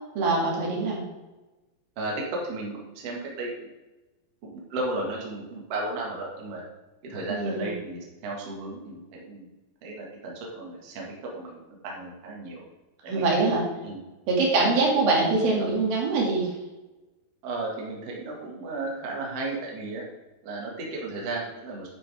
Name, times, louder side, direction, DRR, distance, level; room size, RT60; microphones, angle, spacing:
voice 1, 0.2-1.0 7.3-7.7 13.1-13.6 14.3-16.5, right 3 dB, 75° right, -2 dB, 4.1 m, -23 dB
voice 2, 2.0-3.7 4.4-6.6 7.0-9.5 9.8-12.6 13.0-13.5 13.8-14.0 17.4-20.0 20.4-21.9, right 2 dB, 45° right, -2 dB, 2.6 m, -34 dB
9.4 x 9.1 x 3.6 m, 1.1 s
omnidirectional pair, 4.3 m